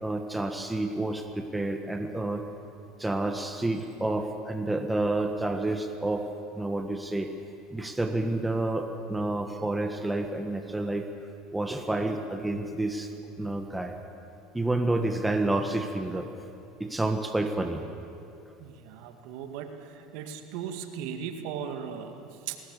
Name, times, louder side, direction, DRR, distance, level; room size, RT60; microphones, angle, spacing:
voice 1, 0.0-2.4 3.0-6.3 6.6-7.3 7.7-11.0 11.5-13.1 13.4-14.0 14.5-16.3 16.8-17.8, right 2 dB, 10° right, 5 dB, 1.5 m, -29 dB
voice 2, 18.6-22.6, right 8 dB, 70° right, 6 dB, 2.0 m, -38 dB
20.5 x 18.0 x 8.3 m, 2.8 s
supercardioid pair, 95°, 0 cm